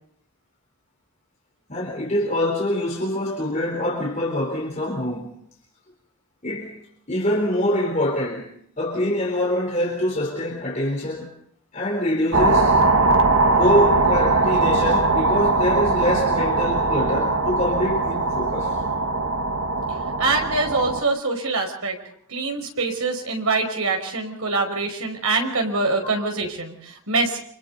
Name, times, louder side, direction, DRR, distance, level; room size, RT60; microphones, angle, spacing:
voice 1, 1.7-5.4 6.4-6.8 7.1-11.3 11.7-12.8 13.6-18.8 26.0-26.1, left 1 dB, 35° left, 4.0 m, -24 dB
sound 1, 12.3-21.0, right 3 dB, 65° right, 1.4 m, -20 dB
voice 2, 20.2-22.0 22.3-27.4, right 3 dB, 85° right, 5.2 m, -24 dB
29.5 x 25.5 x 4.0 m
head